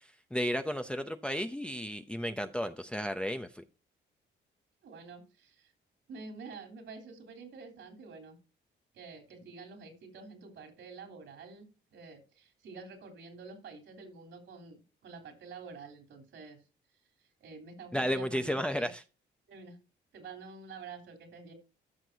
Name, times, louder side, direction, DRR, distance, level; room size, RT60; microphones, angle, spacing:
voice 1, 0.0-3.6 17.9-19.0, equal, 5° left, 0.6 m, -33 dB
voice 2, 4.8-5.7 6.1-8.4 8.9-16.6 17.2-18.9 19.5-19.8 20.1-21.5, right 4 dB, 75° right, 3.4 m, -48 dB
14.0 x 6.0 x 2.8 m
cardioid pair, 90°, 20 cm